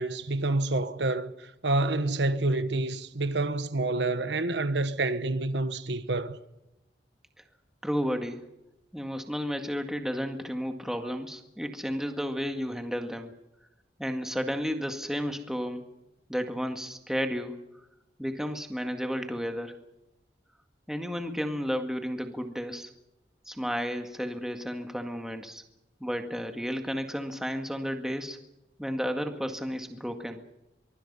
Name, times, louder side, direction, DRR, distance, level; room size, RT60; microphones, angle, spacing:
voice 1, 0.0-6.4, right 2 dB, 85° right, 1.2 m, -28 dB
voice 2, 7.8-8.4 8.9-13.3 14.0-15.8 16.3-17.6 18.2-19.8 20.9-22.9 23.5-25.6 26.0-28.4 28.8-30.4, equal, 5° right, 1.9 m, -32 dB
24.0 x 23.5 x 5.6 m
head